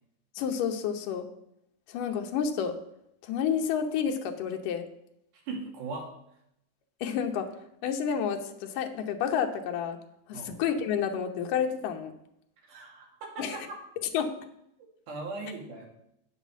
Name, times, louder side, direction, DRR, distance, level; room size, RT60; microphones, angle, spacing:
voice 1, 0.4-1.3 1.9-2.8 3.2-4.9 7.0-7.5 7.8-10.0 10.3-12.1 13.4-13.7 14.1-14.3, left 7 dB, 85° left, 4 dB, 2.6 m, -30 dB
voice 2, 5.5-6.1 10.3-10.5 12.7-13.6 15.1-15.9, right 3 dB, 70° right, 0 dB, 3.6 m, -38 dB
8.2 x 7.4 x 7.3 m, 0.77 s
omnidirectional pair, 3.7 m